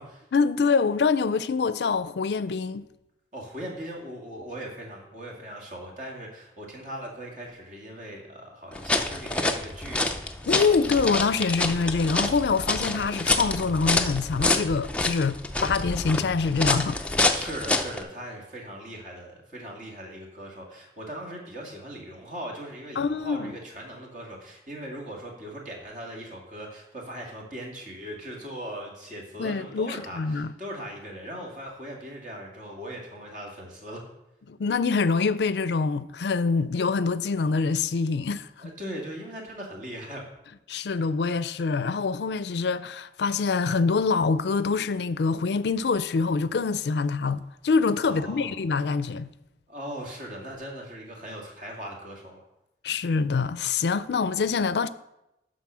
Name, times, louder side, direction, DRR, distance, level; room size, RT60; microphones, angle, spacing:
voice 1, 0.3-2.9 10.5-17.0 23.0-23.5 29.4-30.5 34.5-38.7 40.7-49.3 52.8-54.9, left 4 dB, 75° left, 0.4 m, -25 dB
voice 2, 3.3-10.3 17.3-34.0 38.6-40.2 48.0-48.5 49.7-52.4, equal, 45° right, 2.1 m, -39 dB
sound 1, 8.7-18.0, left 2 dB, 5° left, 0.4 m, -27 dB
11.5 x 4.1 x 6.2 m
head